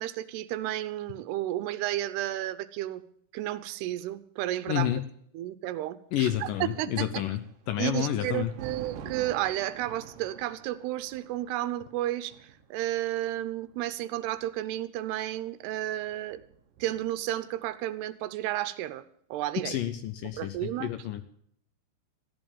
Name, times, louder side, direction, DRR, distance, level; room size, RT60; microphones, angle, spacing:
voice 1, 0.0-3.0 3.3-5.0 5.3-6.5 6.8-7.2 7.8-16.4 16.8-19.0 19.3-19.8 20.4-20.9, right 14 dB, 85° right, 13 dB, 2.9 m, -32 dB
voice 2, 4.7-5.0 6.1-8.5 19.6-21.2, left 12 dB, 75° left, 10 dB, 2.1 m, -30 dB
Thunder, 7.4-14.6 15.6-17.4, right 8 dB, 70° right, 2.4 m, -47 dB
14.5 x 11.0 x 7.1 m, 0.65 s
omnidirectional pair, 4.7 m